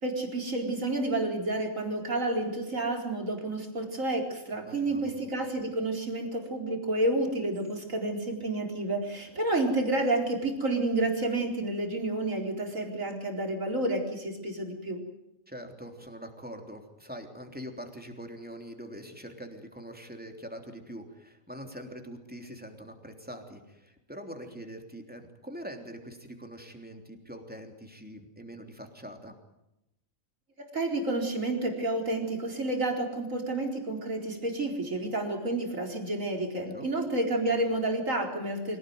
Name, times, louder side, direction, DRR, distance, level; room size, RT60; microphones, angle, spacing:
voice 1, 0.0-15.0 30.6-38.8, right 2 dB, 75° right, 2 dB, 4.7 m, -30 dB
voice 2, 4.5-5.1 15.5-29.3 36.6-36.9, equal, 5° right, 3 dB, 3.4 m, -43 dB
25.5 x 17.5 x 9.5 m, 0.89 s
omnidirectional pair, 1.4 m